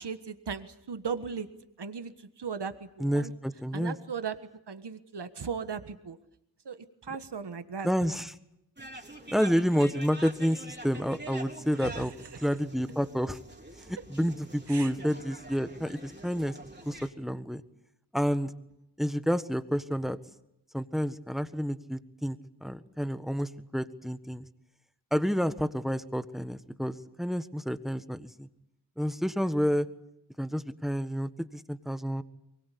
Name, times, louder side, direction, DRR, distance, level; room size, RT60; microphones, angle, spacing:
voice 1, 0.0-1.5 1.8-3.3 3.7-4.3 4.7-6.2 6.6-7.9 11.8-12.5 14.7-14.9, right 6 dB, 80° right, 10 dB, 1.5 m, -37 dB
voice 2, 3.0-4.0 7.8-8.3 9.3-12.1 12.4-13.4 13.9-16.6 16.8-17.6 18.1-18.5 19.0-20.2 20.7-24.5 25.1-28.5 29.0-29.9 30.4-32.2, equal, ahead, 11 dB, 1.4 m, -29 dB
sound 1, 8.8-17.1, right 1 dB, 25° right, 3.5 m, -45 dB
23.5 x 21.5 x 8.4 m, 0.83 s
wide cardioid pair, 60°, 40 cm